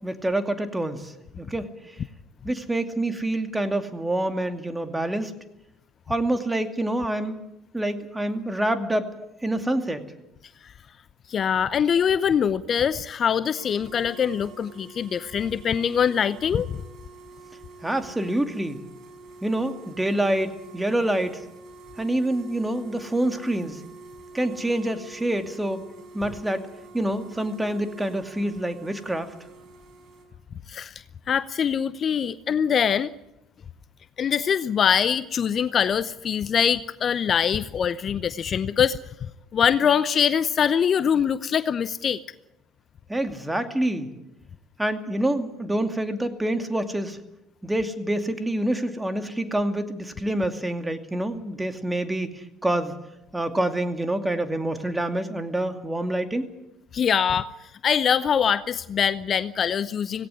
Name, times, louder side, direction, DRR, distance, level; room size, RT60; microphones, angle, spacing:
voice 1, 0.0-2.0 2.4-5.3 6.1-7.4 7.7-9.1 9.4-10.1 17.8-18.8 19.4-21.4 22.0-23.8 24.3-25.8 26.1-26.7 26.9-29.3 43.1-44.1 44.8-47.2 47.6-53.0 53.3-56.5, right 1 dB, 10° right, 7 dB, 2.5 m, -27 dB
voice 2, 11.3-16.7 30.7-33.1 34.2-39.0 39.5-42.2 56.9-57.5 57.8-60.3, left 8 dB, 45° left, 16 dB, 0.7 m, -23 dB
sound 1, 13.4-30.2, right 3 dB, 60° right, 5.0 m, -47 dB
17.5 x 17.5 x 9.7 m, 0.87 s
hypercardioid pair, 65°, 0 cm